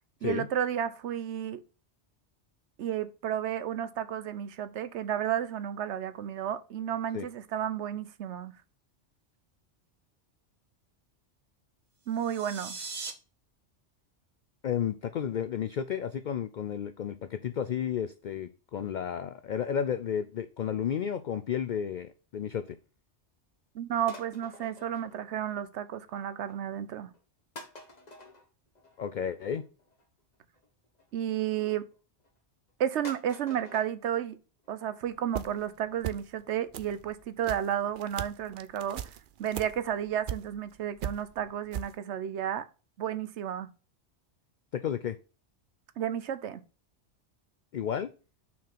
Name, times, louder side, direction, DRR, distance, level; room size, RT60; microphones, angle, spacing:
voice 1, 0.2-1.6 2.8-8.5 12.1-12.8 23.7-27.1 31.1-31.9 32.8-34.4 34.7-39.0 39.4-42.7 43.0-43.7 46.0-46.6, right 10 dB, 80° right, 1.0 m, -32 dB
sound 1, 12.1-13.1, right 4 dB, 40° right, 1.2 m, -40 dB
voice 2, 14.6-22.8 29.0-29.6 44.7-45.2 47.7-48.1, left 8 dB, 55° left, 0.5 m, -32 dB
sound 2, 24.1-25.8 26.1-26.5 27.1-27.2 27.5-31.1 31.8-32.4 32.7-32.8 33.0-33.9 34.2-34.3 34.6-34.7 35.1-35.2 35.4-35.5 35.9-36.0 36.3-36.4 36.8-36.9 37.1-37.2, left 2 dB, 35° left, 1.4 m, -50 dB
sound 3, 35.1-35.7 36.0-36.4 36.7-40.7 41.0-41.9, right 9 dB, 60° right, 0.6 m, -39 dB
5.9 x 4.6 x 5.8 m
omnidirectional pair, 1.2 m